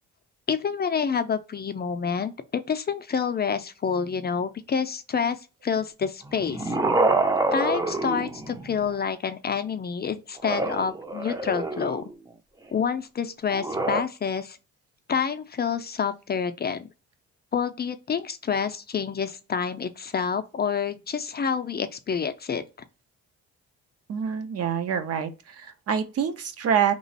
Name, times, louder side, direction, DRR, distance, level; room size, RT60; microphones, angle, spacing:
voice 1, 0.5-6.7 7.5-12.0 12.7-14.6 15.1-16.9 17.5-22.6, left 6 dB, 35° left, 0.5 m, -28 dB
sound 1, 6.2-8.9 10.4-12.1 13.5-14.0, right 2 dB, 10° right, 0.6 m, -26 dB
voice 2, 24.1-26.9, right 7 dB, 55° right, 0.7 m, -26 dB
3.0 x 2.4 x 4.1 m
cardioid pair, 90°, 30 cm